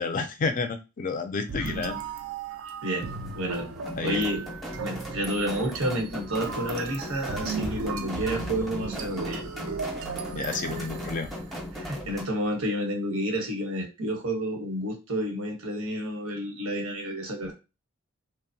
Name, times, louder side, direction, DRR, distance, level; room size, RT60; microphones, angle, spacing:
voice 1, 0.0-2.0 4.0-4.2 10.3-11.3, left 4 dB, 40° left, 7 dB, 0.4 m, -30 dB
sound 1, 1.5-11.8, right 5 dB, 70° right, 0.4 m, -36 dB
sound 2, 3.0-12.2, equal, ahead, 0.6 m, -38 dB
voice 2, 3.3-3.7 4.0-4.5 4.8-9.4 11.7-17.5, equal, 90° right, 3 dB, 1.0 m, -30 dB
2.8 x 2.0 x 2.6 m, 0.27 s
head